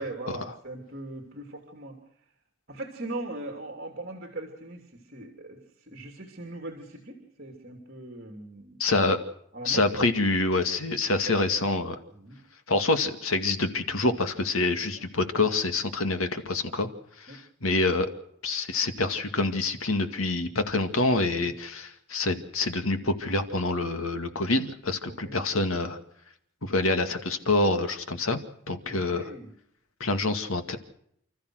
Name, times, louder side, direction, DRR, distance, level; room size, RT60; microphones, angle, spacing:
voice 1, 0.0-2.0 2.7-8.8 9.5-10.1 12.1-12.4 17.3-17.4 21.4-21.6 25.1-25.4 28.9-29.5, right 2 dB, 50° right, 4 dB, 3.0 m, -40 dB
voice 2, 8.8-9.2 9.6-12.0 12.7-16.9 17.2-18.1 18.4-26.0 26.6-28.4 28.7-29.3 30.0-30.8, left 2 dB, 85° left, 8 dB, 2.2 m, -26 dB
29.5 x 14.0 x 6.4 m, 0.71 s
head